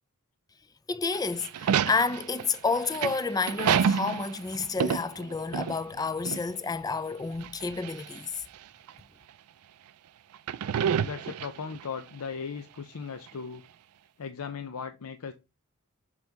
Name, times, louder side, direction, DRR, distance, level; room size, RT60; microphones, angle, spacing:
voice 1, 0.9-8.4, left 4 dB, 15° left, 0.4 m, -30 dB
sound 1, 1.1-6.0 6.3-6.4 7.4-8.2 8.9-9.0 10.3-11.8, right 8 dB, 80° right, 0.4 m, -28 dB
voice 2, 11.0-13.6 14.2-15.3, left 6 dB, 85° left, 0.6 m, -37 dB
6.2 x 5.2 x 3.5 m
head